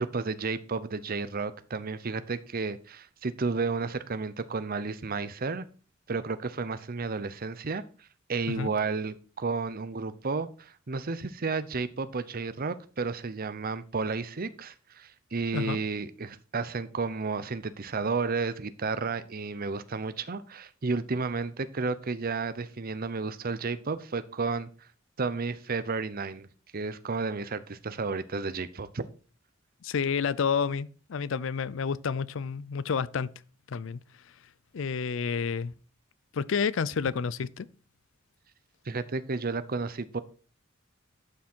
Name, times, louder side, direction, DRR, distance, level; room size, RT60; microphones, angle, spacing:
voice 1, 0.0-5.7 6.1-24.7 25.2-26.5 26.7-29.0 38.9-40.2, right 4 dB, 50° right, 0.7 m, -32 dB
voice 2, 29.8-33.3 33.7-34.0 34.7-35.7 36.3-37.7, left 6 dB, 70° left, 0.5 m, -29 dB
11.5 x 6.1 x 4.5 m
head